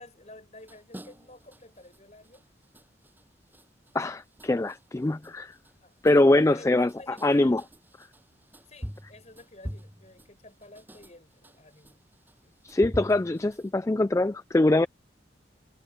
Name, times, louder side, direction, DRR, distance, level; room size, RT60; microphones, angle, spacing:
voice 1, 0.0-2.4 5.8-6.0 6.5-7.6 8.7-12.0 12.4-12.6, left 2 dB, 40° left, 7.1 m, -51 dB
sound 1, 0.6-13.7, equal, 10° right, 7.8 m, -45 dB
voice 2, 3.9-5.5 6.0-7.6 12.6-14.9, left 2 dB, 15° left, 0.3 m, -23 dB
head